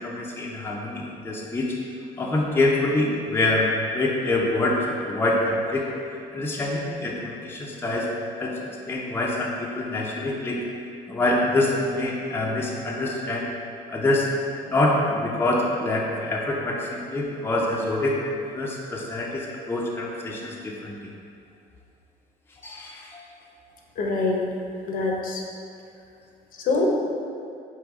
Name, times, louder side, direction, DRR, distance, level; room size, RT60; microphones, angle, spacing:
voice 1, 0.0-1.7 2.2-5.8 6.3-8.1 8.4-10.6 11.1-13.5 13.9-14.3 14.7-21.0 22.6-23.2, left 2 dB, 15° left, -3 dB, 0.5 m, -25 dB
voice 2, 24.0-24.4 24.8-25.4 26.6-26.9, left 3 dB, 55° left, 0 dB, 0.7 m, -24 dB
4.7 x 2.9 x 3.5 m, 2.5 s
cardioid pair, 110°, 17 cm